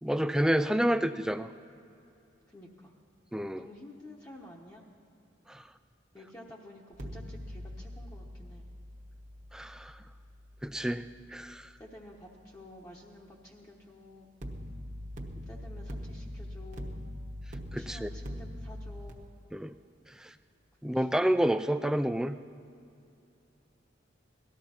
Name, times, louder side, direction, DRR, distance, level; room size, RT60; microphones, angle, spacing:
voice 1, 0.0-1.5 3.3-3.6 5.5-5.6 9.5-10.0 10.6-11.7 17.7-18.1 19.5-19.7 20.1-20.3 20.8-22.4, right 1 dB, 5° right, 10 dB, 0.3 m, -29 dB
voice 2, 2.5-2.9 3.6-4.9 6.1-8.7 11.8-14.3 15.5-17.0 17.7-19.3 20.9-21.1, left 1 dB, 15° left, -3 dB, 1.0 m, -51 dB
sound 1, 6.9-12.0 14.4-19.1, equal, 40° right, 1.1 m, -43 dB
18.0 x 13.5 x 4.3 m, 2.6 s
head